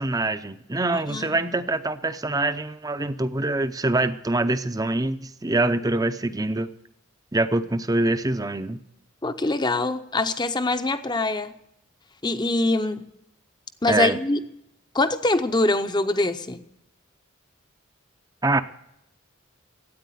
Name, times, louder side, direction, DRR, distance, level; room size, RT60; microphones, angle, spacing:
voice 1, 0.0-6.7 7.3-8.8 13.9-14.2 18.4-18.6, right 2 dB, 15° right, 0.6 m, -24 dB
voice 2, 9.2-11.5 12.2-13.1 13.8-14.4 14.9-16.6, left 2 dB, 20° left, 0.7 m, -24 dB
13.0 x 9.1 x 9.2 m
head